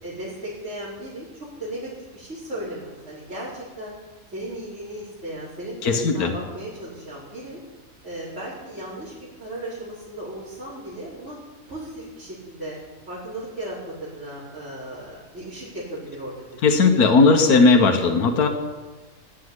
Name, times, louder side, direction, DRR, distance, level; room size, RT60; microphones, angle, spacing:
voice 1, 0.0-3.9 4.3-7.6 8.0-11.4 11.7-12.8 13.1-17.1, right 1 dB, 50° right, -12 dB, 5.1 m, -36 dB
voice 2, 5.8-6.3 16.6-18.5, left 4 dB, 75° left, 5 dB, 1.8 m, -17 dB
17.0 x 6.5 x 9.8 m, 1.2 s
omnidirectional pair, 1.6 m